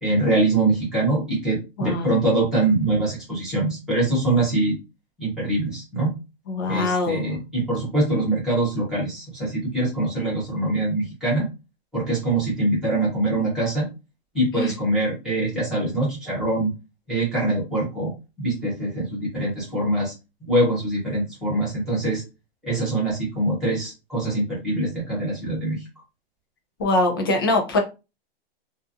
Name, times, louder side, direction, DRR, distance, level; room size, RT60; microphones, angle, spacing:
voice 1, 0.0-4.8 5.2-6.2 6.7-11.5 11.9-13.9 14.3-16.7 17.1-18.1 18.4-20.1 20.4-22.2 22.6-25.8, right 2 dB, ahead, -8 dB, 1.0 m, -23 dB
voice 2, 1.8-2.1 6.5-7.4 14.5-14.7 22.7-22.8 26.8-27.8, left 2 dB, 25° left, 3 dB, 0.4 m, -23 dB
2.4 x 2.2 x 2.6 m, 0.28 s
hypercardioid pair, 165°, 30 cm